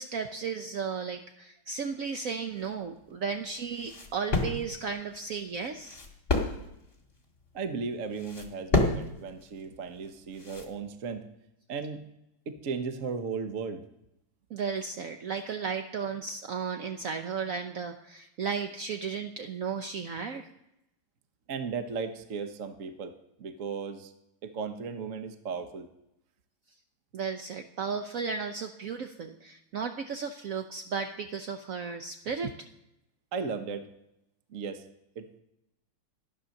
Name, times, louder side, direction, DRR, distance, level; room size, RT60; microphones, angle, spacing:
voice 1, 0.0-6.0 14.5-20.5 27.1-32.7, right 6 dB, 75° right, 6 dB, 0.7 m, -34 dB
sound 1, 2.5-10.7, left 2 dB, 25° left, 2.2 m, -32 dB
voice 2, 7.5-11.3 11.7-12.0 12.5-13.8 21.5-24.1 24.4-25.9 33.3-33.9 34.5-34.9 35.1-35.3, right 5 dB, 50° right, 8 dB, 1.1 m, -36 dB
13.5 x 10.0 x 6.4 m, 0.84 s
omnidirectional pair, 2.4 m